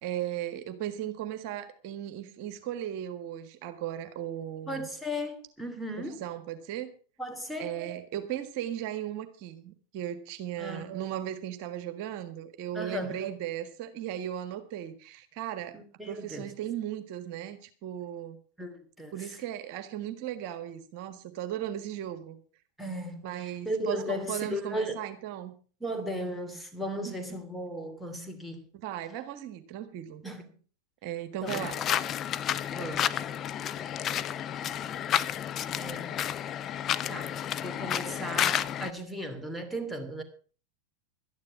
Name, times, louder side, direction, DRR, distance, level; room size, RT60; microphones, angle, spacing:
voice 1, 0.0-4.9 6.2-6.9 7.6-15.8 16.0-18.4 19.1-22.4 23.2-25.5 27.0-27.2 28.7-30.2 31.0-31.8, right 11 dB, 45° right, 1.6 m, -36 dB
voice 2, 4.7-6.2 7.2-7.8 10.6-10.9 12.7-13.3 15.7-16.5 18.6-19.4 22.8-25.0 25.8-28.7 30.2-30.6 31.4-31.7 32.7-33.1 35.7-36.2 37.1-40.2, equal, ahead, 2.8 m, -36 dB
sound 1, 31.5-38.9, left 10 dB, 30° left, 0.7 m, -31 dB
12.5 x 10.5 x 6.2 m
figure-of-eight pair, 90°, 0 cm